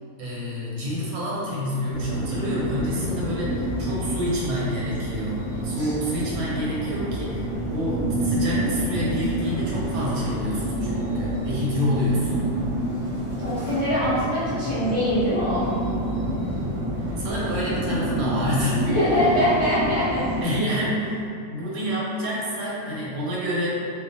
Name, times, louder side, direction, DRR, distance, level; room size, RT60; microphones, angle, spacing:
voice 1, 0.2-12.5 16.9-18.8 20.4-23.7, equal, 90° right, -6 dB, 1.1 m, -28 dB
sound 1, 1.9-20.4, right 1 dB, 35° right, 0.8 m, -28 dB
voice 2, 13.4-15.7 18.8-20.5, equal, 65° left, -14 dB, 0.3 m, -23 dB
2.4 x 2.2 x 2.6 m, 2.5 s
omnidirectional pair, 1.5 m